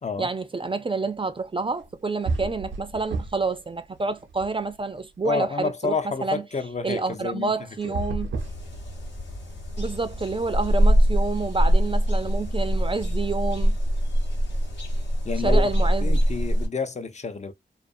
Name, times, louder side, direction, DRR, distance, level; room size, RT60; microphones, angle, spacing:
voice 1, 0.2-6.4 6.8-8.3 9.8-13.8 15.4-16.2, right 3 dB, 30° right, 0.4 m, -28 dB
sound 1, 1.8-1.9 2.2-3.6 3.9-5.0 7.8-9.3, right 3 dB, 90° right, 0.5 m, -32 dB
voice 2, 5.2-7.5 7.8-7.9 15.2-15.7 16.0-17.5, left 4 dB, 40° left, 0.6 m, -29 dB
sound 2, 8.4-16.7, equal, 80° left, 1.0 m, -23 dB
2.5 x 2.3 x 2.5 m
cardioid pair, 45°, 19 cm